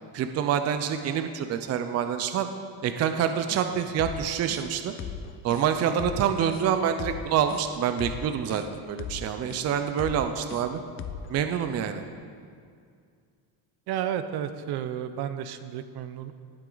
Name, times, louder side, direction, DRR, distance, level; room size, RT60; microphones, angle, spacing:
voice 1, 0.1-2.5 2.8-4.9 5.4-10.8 11.3-12.0, right 8 dB, 40° right, 8 dB, 0.5 m, -27 dB
sound 1, 3.5-11.4, left 9 dB, 35° left, 0.4 m, -38 dB
voice 2, 13.9-16.3, right 9 dB, 75° right, 11 dB, 0.7 m, -32 dB
19.0 x 7.7 x 3.9 m, 2.2 s
cardioid pair, 175°, 40 cm